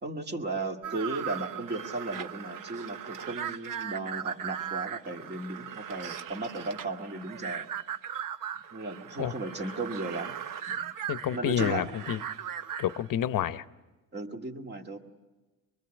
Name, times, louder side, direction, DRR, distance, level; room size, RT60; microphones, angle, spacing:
voice 1, 0.0-7.7 8.7-10.4 10.7-10.9 11.3-11.9 14.1-15.0, right 2 dB, 25° right, 3 dB, 2.1 m, -35 dB
sound 1, 0.8-13.1, right 9 dB, 60° right, 0.9 m, -38 dB
voice 2, 11.1-12.2 12.8-13.6, left 10 dB, 60° left, 14 dB, 0.9 m, -29 dB
24.5 x 23.0 x 8.9 m, 1.2 s
cardioid pair, 140°, 37 cm